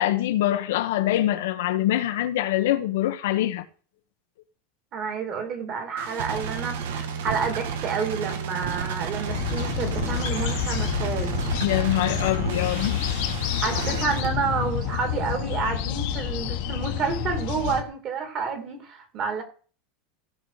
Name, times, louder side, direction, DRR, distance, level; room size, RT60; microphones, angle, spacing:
voice 1, 0.0-3.6 11.6-13.1, left 14 dB, 75° left, 1.2 m, -24 dB
voice 2, 4.9-11.4 13.6-19.4, right 5 dB, 30° right, 2.7 m, -29 dB
sound 1, 6.0-14.3, right 7 dB, 80° right, 2.0 m, -32 dB
sound 2, 9.2-17.8, left 10 dB, 55° left, 1.4 m, -28 dB
16.0 x 5.8 x 5.0 m
supercardioid pair, 165°, 0 cm